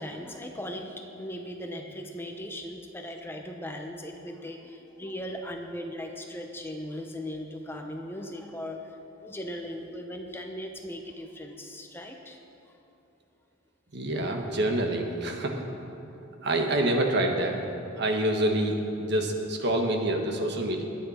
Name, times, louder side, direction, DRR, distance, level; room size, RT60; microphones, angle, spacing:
voice 1, 0.0-12.4 12.7-12.8, equal, 10° left, 3 dB, 0.7 m, -38 dB
voice 2, 13.9-15.6 16.4-17.6 18.0-20.8, right 1 dB, 55° right, 2 dB, 1.4 m, -27 dB
21.0 x 9.3 x 4.3 m, 3.0 s
head